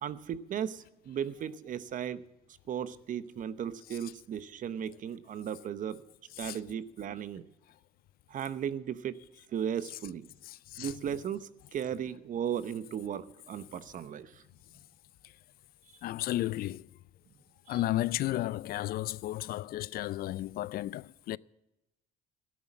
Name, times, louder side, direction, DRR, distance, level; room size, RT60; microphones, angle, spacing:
voice 1, 0.0-2.2 2.7-6.0 6.4-7.4 8.3-9.2 9.5-10.3 10.8-14.3 17.7-17.8, right 9 dB, 50° right, 0.9 m, -36 dB
voice 2, 10.4-10.9 16.0-16.9 17.7-21.4, left 15 dB, 60° left, 0.4 m, -33 dB
14.0 x 11.0 x 7.3 m
cardioid pair, 110°, 17 cm